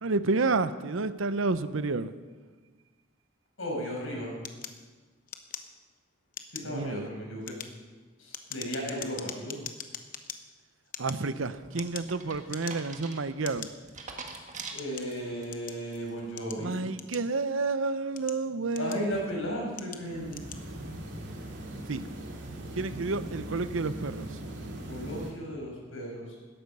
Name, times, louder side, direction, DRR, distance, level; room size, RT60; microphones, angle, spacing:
voice 1, 0.0-2.1 6.6-7.1 11.0-13.7 16.6-19.2 19.8-20.2 21.9-22.1 22.7-24.4, right 3 dB, 75° right, 13 dB, 0.7 m, -30 dB
voice 2, 3.6-4.3 6.5-7.6 8.2-9.6 14.7-16.8 18.8-20.4 24.9-26.3, equal, 80° left, -1 dB, 5.7 m, -35 dB
sound 1, 4.4-6.0 6.3-6.8 7.3-10.4 10.8-12.2 12.5-13.0 13.4-13.7 14.4-15.8 16.4-17.5 18.0-19.2 19.7-20.0 20.3-20.6, left 9 dB, 40° left, 0.9 m, -42 dB
sound 2, 11.2-15.4 15.9-16.3, right 4 dB, 35° right, 1.6 m, -44 dB
sound 3, 19.1-19.5 19.9-25.3, right 1 dB, 55° right, 2.7 m, -40 dB
17.0 x 13.0 x 5.5 m, 1.4 s
head